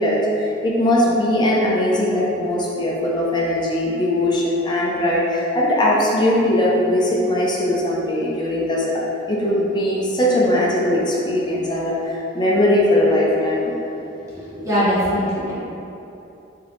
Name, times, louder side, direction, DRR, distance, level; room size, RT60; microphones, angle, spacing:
voice 1, 0.0-8.9 9.3-13.7, left 1 dB, 25° left, -4 dB, 0.5 m, -20 dB
voice 2, 14.3-15.5, equal, 15° right, -10 dB, 1.1 m, -21 dB
3.7 x 3.6 x 3.1 m, 2.9 s
head